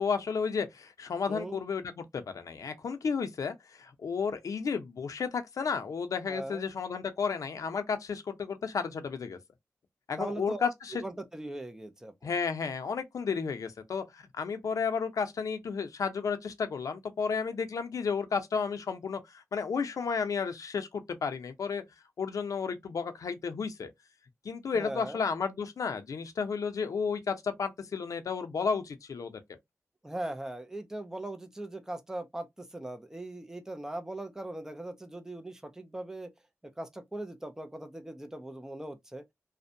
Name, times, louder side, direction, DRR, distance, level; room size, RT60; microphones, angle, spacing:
voice 1, 0.0-9.4 10.1-10.9 12.2-21.8 22.2-23.9 24.4-29.4, left 5 dB, 90° left, 0.5 m, -32 dB
voice 2, 1.3-1.6 6.3-6.6 10.2-10.7 11.0-12.3 24.7-25.2 30.0-36.3 36.6-39.2, right 1 dB, 10° right, 0.4 m, -39 dB
2.5 x 2.1 x 2.6 m
wide cardioid pair, 110°, 6 cm